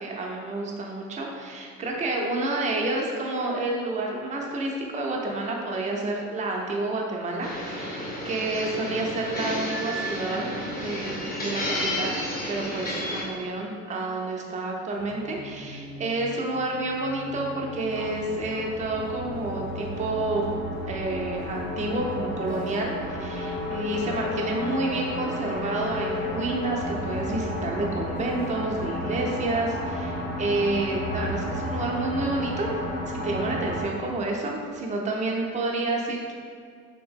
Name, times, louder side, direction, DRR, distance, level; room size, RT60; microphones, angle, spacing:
voice 1, 0.0-10.5 10.8-12.2 12.5-20.5 20.9-32.7 33.2-36.3, right 2 dB, 20° right, -1 dB, 0.5 m, -29 dB
sound 1, 7.4-13.2, equal, 20° left, 0.8 m, -31 dB
sound 2, 14.9-33.9, left 1 dB, 70° left, 1.0 m, -33 dB
3.3 x 2.8 x 3.6 m, 2.2 s
figure-of-eight pair, 65°, 40 cm